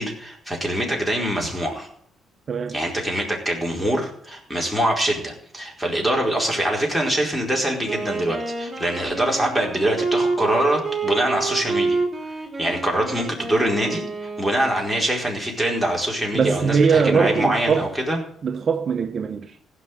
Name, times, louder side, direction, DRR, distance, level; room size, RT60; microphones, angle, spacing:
voice 1, 0.0-1.9 2.7-12.0 12.6-18.2, right 1 dB, 5° left, 4.8 m, -24 dB
voice 2, 2.5-2.8 16.3-17.9 18.4-19.5, right 6 dB, 50° right, 0.8 m, -21 dB
Wind instrument woodwind instrument, 7.7-14.9, right 3 dB, 25° right, 3.0 m, -28 dB
15.5 x 6.0 x 9.5 m
cardioid pair, 90°, 0 cm